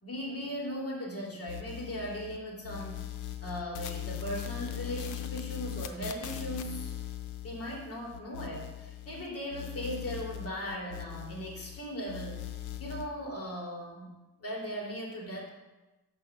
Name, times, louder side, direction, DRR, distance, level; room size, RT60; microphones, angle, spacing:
voice 1, 0.0-3.0 3.4-6.9 7.4-12.5 12.8-14.1 14.4-15.5, equal, 50° left, -2 dB, 2.9 m, -38 dB
sound 1, 1.5-2.4 2.6-9.2 9.5-11.8 12.1-13.1, left 11 dB, 85° left, 0.7 m, -40 dB
7.1 x 5.5 x 5.5 m, 1.1 s
cardioid pair, 90°, 30 cm